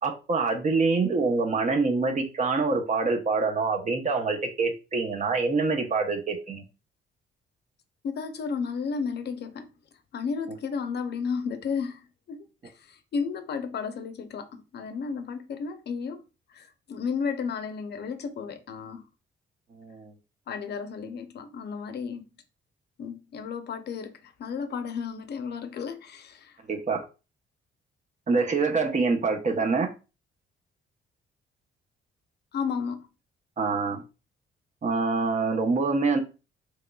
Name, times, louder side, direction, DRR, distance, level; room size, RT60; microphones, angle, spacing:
voice 1, 0.0-6.6 19.8-20.1 26.7-27.1 28.3-29.9 33.6-34.0 34.8-36.2, right 4 dB, 40° right, 0.8 m, -25 dB
voice 2, 8.0-9.7 10.1-16.2 16.5-19.0 20.5-22.3 23.0-26.6 32.5-33.1, left 5 dB, 55° left, 0.6 m, -33 dB
3.7 x 3.1 x 2.3 m
cardioid pair, 90°, 20 cm